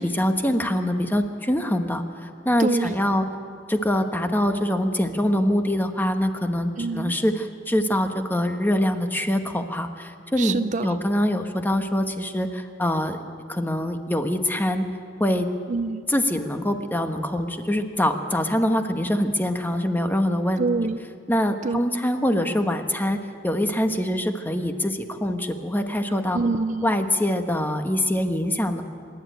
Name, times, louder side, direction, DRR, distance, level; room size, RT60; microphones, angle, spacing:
voice 1, 0.0-3.2 3.7-13.2 13.5-14.8 15.2-15.5 16.1-20.7 21.3-23.2 23.4-26.4 26.8-28.8, left 1 dB, 10° left, 6 dB, 1.2 m, -24 dB
voice 2, 2.6-3.0 6.8-7.1 10.4-11.0 15.7-16.1 20.6-21.0 21.6-21.8 26.3-26.9, right 3 dB, 40° right, 12 dB, 0.5 m, -26 dB
24.5 x 11.5 x 9.2 m, 2.2 s
head